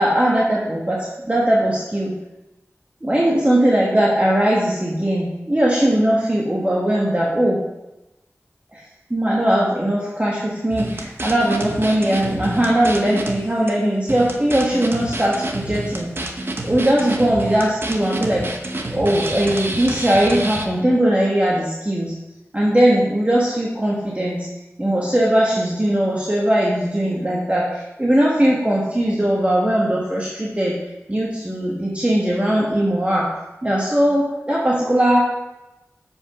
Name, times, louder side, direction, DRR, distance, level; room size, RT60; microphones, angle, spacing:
voice 1, 0.0-2.1 3.0-7.6 8.7-16.1 16.6-18.5 18.9-22.1 22.5-24.5 24.8-30.7 31.1-33.3 33.6-35.3, right 1 dB, 25° right, -4 dB, 1.3 m, -19 dB
sound 1, 10.7-13.4 13.7-13.8 14.1-20.7, right 1 dB, 50° right, 0.9 m, -28 dB
6.7 x 5.4 x 4.9 m, 0.99 s
wide cardioid pair, 50°, 5 cm